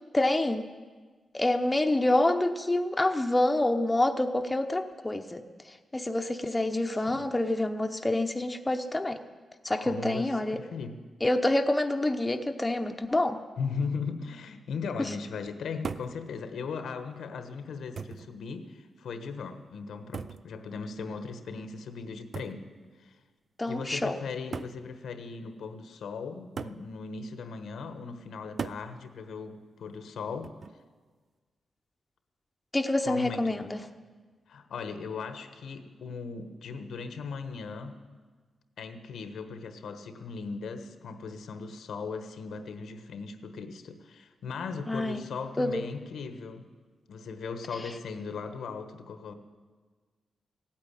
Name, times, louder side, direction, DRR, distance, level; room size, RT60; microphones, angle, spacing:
voice 1, 0.1-0.7 1.3-5.4 5.9-9.2 9.6-10.6 11.2-13.4 15.0-15.1 23.6-24.2 32.7-33.8 44.9-45.2 45.6-45.8, left 1 dB, 15° left, 6 dB, 0.8 m, -27 dB
voice 2, 7.0-7.3 9.8-11.0 13.6-22.7 23.0-23.2 23.7-30.6 33.1-33.6 34.5-38.0 38.8-46.7 47.1-49.3, left 5 dB, 85° left, 9 dB, 1.2 m, -38 dB
sound 1, 15.8-16.2 17.2-17.3 18.0-18.3 20.1-20.5 22.3-22.6 23.7-23.8 24.5-24.8 26.6-26.9 28.6-28.9 30.4-30.8, right 5 dB, 45° right, 0.4 m, -37 dB
16.0 x 8.9 x 9.9 m, 1.4 s
wide cardioid pair, 120°, 0 cm